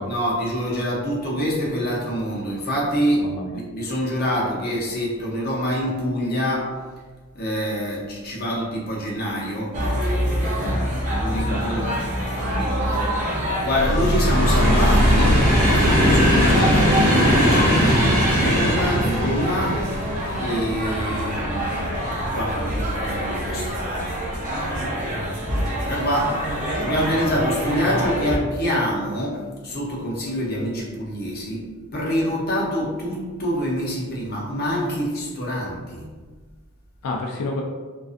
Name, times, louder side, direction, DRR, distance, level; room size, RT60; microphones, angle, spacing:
voice 1, 0.0-6.9 7.3-19.8 20.4-25.3 25.7-36.1, equal, 45° left, -4 dB, 0.6 m, -26 dB
voice 2, 3.2-3.6 10.6-10.9 11.3-11.6 25.1-25.7 37.0-37.6, left 2 dB, 85° left, 0 dB, 0.3 m, -31 dB
sound 1, 9.7-28.4, equal, 35° right, 0.5 m, -27 dB
sound 2, 13.7-24.9 25.5-26.2 27.0-27.2 27.5-27.7, equal, 80° right, 1.2 m, -20 dB
2.4 x 2.3 x 2.4 m, 1.3 s
head